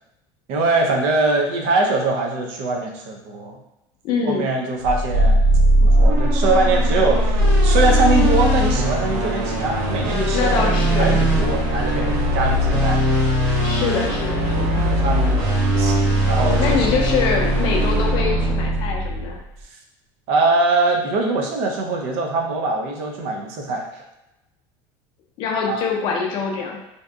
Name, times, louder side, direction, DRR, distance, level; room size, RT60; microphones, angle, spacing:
voice 1, 0.5-3.6 4.2-5.4 5.8-13.4 14.8-16.0 16.3-16.9 20.3-24.0 25.7-25.8, right 3 dB, 55° right, 2 dB, 0.5 m, -22 dB
voice 2, 4.0-4.5 10.3-11.2 13.6-14.8 16.6-19.4 25.4-26.8, left 5 dB, 40° left, 0 dB, 0.5 m, -24 dB
sound 1, 4.8-19.4, equal, 70° right, 1.1 m, -19 dB
2.6 x 2.5 x 2.3 m, 0.93 s
cardioid pair, 165°, 12 cm